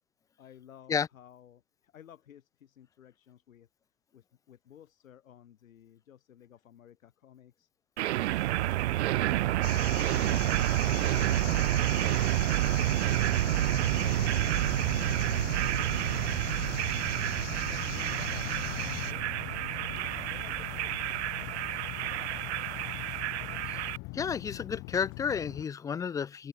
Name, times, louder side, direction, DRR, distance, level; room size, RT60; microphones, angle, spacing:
voice 1, 0.4-3.7 4.1-7.7 8.4-13.1 13.7-16.6 17.5-19.5 20.1-21.3, left 10 dB, 75° left, 4.6 m, -55 dB
sound 1, 8.0-24.0, right 15 dB, 55° right, 1.1 m, -29 dB
sound 2, 9.6-19.1, left 13 dB, 60° left, 4.9 m, -41 dB
sound 3, 9.7-25.6, left 27 dB, 35° left, 2.2 m, -43 dB
voice 2, 24.1-26.5, left 6 dB, 10° left, 0.6 m, -31 dB
open air
hypercardioid pair, 145°, 40 cm